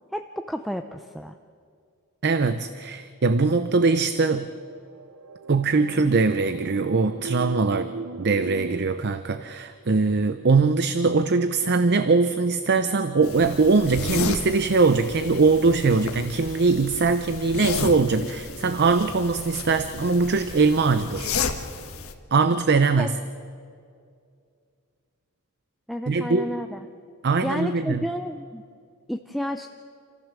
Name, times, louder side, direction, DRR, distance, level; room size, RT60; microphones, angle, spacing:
voice 1, 0.1-1.3 23.0-23.1 25.9-26.8 27.4-28.6 29.1-29.7, equal, ahead, 5 dB, 0.6 m, -30 dB
voice 2, 2.2-4.5 5.5-7.9 8.2-21.4 22.3-23.1 26.1-26.5 27.2-28.1, right 4 dB, 50° right, 11 dB, 0.7 m, -21 dB
sound 1, 4.0-8.8, right 4 dB, 90° right, 0.7 m, -38 dB
sound 2, 13.2-22.1, left 4 dB, 75° left, 1.5 m, -33 dB
28.0 x 15.0 x 7.5 m, 2.3 s
head